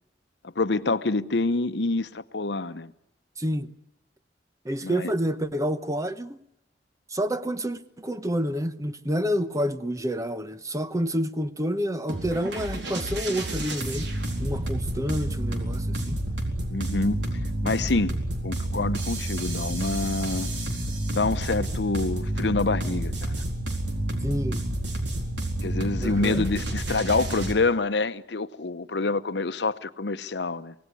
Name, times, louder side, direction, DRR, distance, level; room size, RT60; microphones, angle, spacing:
voice 1, 0.6-2.9 4.8-5.1 16.7-17.3 17.6-18.2 18.4-20.5 21.1-23.4 25.6-30.7, left 3 dB, 70° left, 0.9 m, -27 dB
voice 2, 3.4-3.7 4.6-6.4 7.1-14.1 14.4-16.2 24.2-24.6 26.0-26.5, equal, 20° right, 1.0 m, -28 dB
sound 1, 12.1-27.5, right 1 dB, 80° right, 4.1 m, -30 dB
25.0 x 18.0 x 9.7 m
head